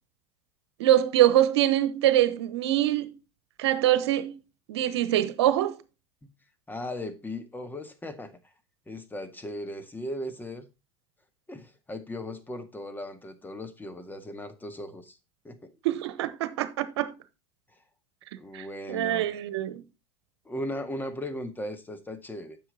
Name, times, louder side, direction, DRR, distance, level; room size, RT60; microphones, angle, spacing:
voice 1, 0.8-3.1 3.6-4.3 4.7-5.8 15.8-17.1 18.5-19.8, right 13 dB, 70° right, 1.1 m, -24 dB
voice 2, 6.7-8.3 8.9-10.7 11.5-15.2 15.4-15.7 18.4-19.3 20.5-22.6, left 1 dB, 15° left, 2.0 m, -37 dB
9.9 x 7.2 x 4.3 m
hypercardioid pair, 80°, 14 cm